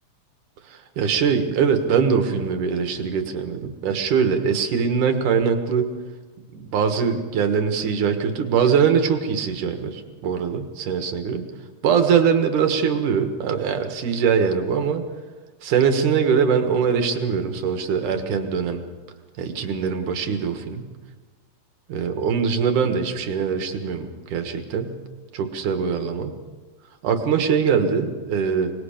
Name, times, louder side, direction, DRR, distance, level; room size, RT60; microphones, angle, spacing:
voice 1, 0.7-5.9 6.5-11.4 11.8-15.0 15.6-18.8 19.4-20.9 21.9-25.0 25.3-26.3 27.0-28.7, right 6 dB, 65° right, 6 dB, 2.9 m, -22 dB
25.0 x 20.5 x 5.1 m, 1.3 s
omnidirectional pair, 4.0 m